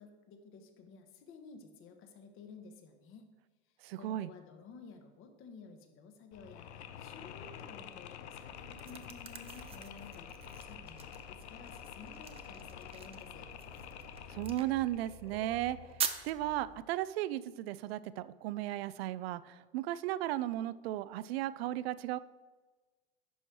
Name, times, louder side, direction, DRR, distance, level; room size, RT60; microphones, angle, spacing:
voice 1, 0.0-3.2 3.9-13.5, left 4 dB, 40° left, 6 dB, 1.2 m, -53 dB
voice 2, 3.8-4.3 14.3-15.8 16.2-22.2, right 14 dB, 65° right, 16 dB, 0.5 m, -35 dB
Mechanisms, 6.3-16.1, left 8 dB, 80° left, 0.7 m, -48 dB
sound 1, 8.4-16.8, right 7 dB, 15° right, 0.6 m, -44 dB
11.0 x 4.5 x 4.6 m, 1.3 s
hypercardioid pair, 120°, 33 cm